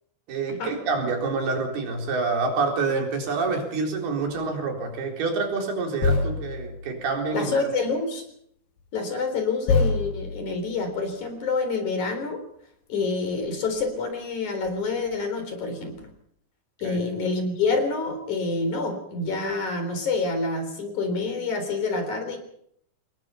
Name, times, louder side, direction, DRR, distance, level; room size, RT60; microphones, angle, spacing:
voice 1, 0.3-7.7 16.8-17.0, right 4 dB, 85° right, 2 dB, 6.0 m, -27 dB
sound 1, 2.3-2.5 4.3-4.5 6.0-7.6 8.8-8.9 9.6-11.4 13.0-13.1 13.3-13.9 14.6-15.2 15.9-16.1, left 3 dB, 70° left, 3.9 m, -28 dB
voice 2, 7.3-8.2 8.9-12.4 12.9-16.1 16.8-22.4, left 3 dB, 50° left, 7 dB, 5.0 m, -27 dB
26.5 x 20.0 x 5.7 m, 0.68 s
omnidirectional pair, 4.4 m